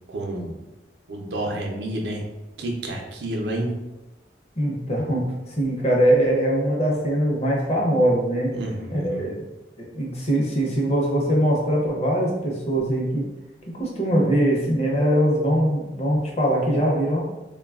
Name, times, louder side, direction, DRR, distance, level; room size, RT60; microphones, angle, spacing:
voice 1, 0.1-0.6 1.1-2.3 2.6-3.8 8.6-9.3, right 1 dB, 80° right, 1 dB, 0.5 m, -29 dB
voice 2, 4.6-8.6 8.9-9.4 9.8-13.3 13.8-17.2, right 1 dB, 35° left, -2 dB, 0.6 m, -22 dB
3.1 x 2.2 x 2.3 m, 1.0 s
head